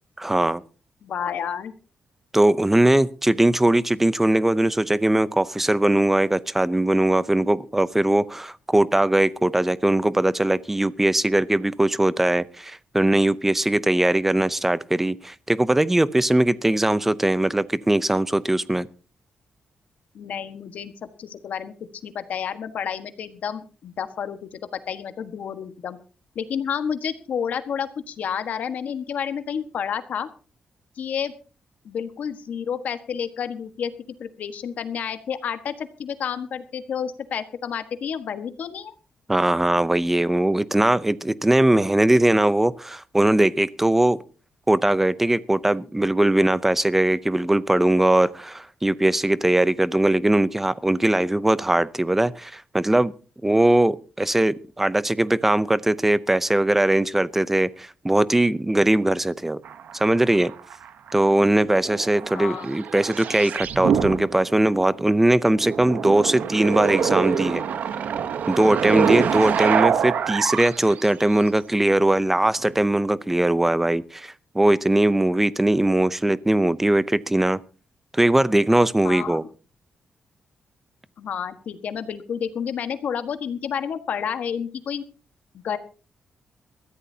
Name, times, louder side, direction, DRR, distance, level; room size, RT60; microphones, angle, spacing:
voice 1, 0.2-0.6 2.3-18.9 39.3-44.2 44.7-53.1 53.4-59.6 59.9-60.5 61.1-67.6 68.5-77.6 78.1-79.4, right 1 dB, 10° right, 0.6 m, -20 dB
voice 2, 1.0-1.7 20.1-21.7 22.0-24.6 24.9-26.0 26.3-30.3 31.0-31.3 31.8-33.9 34.2-38.9 62.3-62.7 79.0-79.4 81.2-85.0 85.6-85.8, left 7 dB, 65° left, 1.4 m, -30 dB
sound 1, 59.7-61.1 61.4-64.8 65.5-71.3 72.6-72.7, right 8 dB, 70° right, 1.0 m, -25 dB
22.0 x 14.0 x 2.8 m
wide cardioid pair, 145°, 3 cm